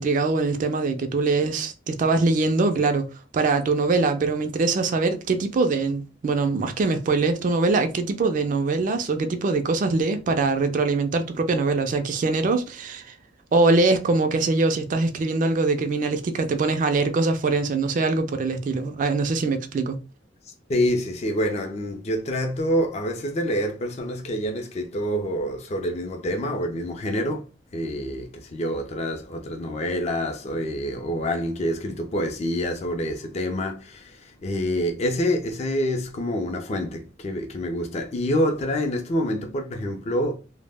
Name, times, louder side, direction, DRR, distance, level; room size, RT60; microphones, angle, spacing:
voice 1, 0.0-3.1 3.3-13.1 13.5-20.0, right 3 dB, 45° right, 0.3 m, -23 dB
voice 2, 20.7-27.5 27.7-40.4, equal, 35° left, 0.4 m, -27 dB
2.1 x 2.0 x 3.3 m
head